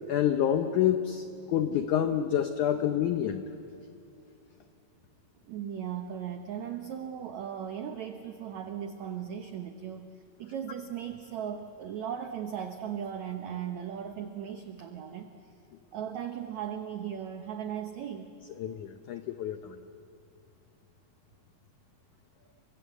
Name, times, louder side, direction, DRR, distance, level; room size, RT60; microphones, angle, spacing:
voice 1, 0.1-3.5 18.6-19.8, left 10 dB, 80° left, 8 dB, 1.7 m, -28 dB
voice 2, 5.5-10.1 10.4-15.3 15.9-18.3, right 9 dB, 80° right, 6 dB, 1.6 m, -37 dB
30.0 x 24.0 x 8.2 m, 2.7 s
omnidirectional pair, 4.7 m